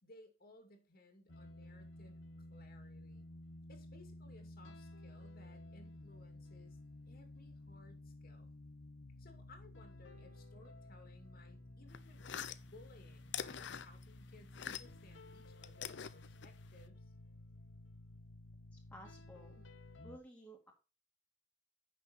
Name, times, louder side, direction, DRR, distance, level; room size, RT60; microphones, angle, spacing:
voice 1, 0.0-2.2 2.5-3.3 3.7-6.8 7.1-8.5 9.2-17.1, left 2 dB, 55° left, 4 dB, 2.5 m, -62 dB
sound 1, 1.3-20.2, left 1 dB, 85° left, 1.3 m, -54 dB
sound 2, 11.9-15.1 15.4-16.9, left 8 dB, 70° left, 0.6 m, -45 dB
voice 2, 18.7-19.7 20.0-20.7, right 1 dB, 10° left, -1 dB, 2.5 m, -55 dB
10.0 x 6.4 x 4.2 m, 0.31 s
head